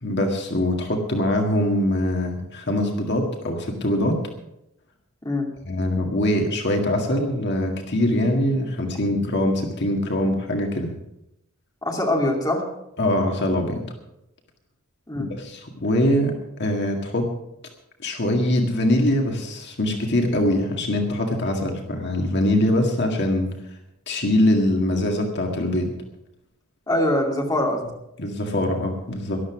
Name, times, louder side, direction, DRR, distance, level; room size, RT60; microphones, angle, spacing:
voice 1, 0.0-4.2 5.7-10.9 13.0-13.8 15.2-17.3 18.0-23.5 24.1-25.9 28.2-29.4, left 1 dB, 55° left, 2 dB, 1.9 m, -23 dB
voice 2, 11.8-12.6 15.1-15.3 26.9-27.8, left 1 dB, 20° left, 0 dB, 2.5 m, -23 dB
13.5 x 12.0 x 6.1 m, 0.86 s
head